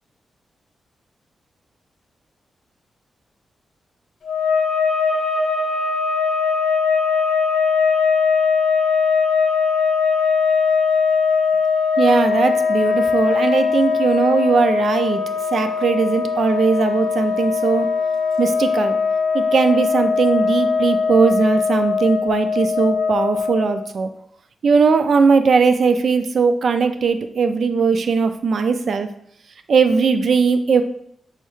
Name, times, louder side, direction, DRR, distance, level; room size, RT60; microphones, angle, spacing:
sound 1, 4.2-23.9, left 5 dB, 65° left, 0.4 m, -20 dB
voice 1, 12.0-15.2 15.5-17.9 18.4-19.0 19.3-24.1 24.6-29.1 29.7-30.8, right 5 dB, 65° right, 9 dB, 0.3 m, -18 dB
4.3 x 2.3 x 3.1 m, 0.67 s
cardioid pair, 95°, 0 cm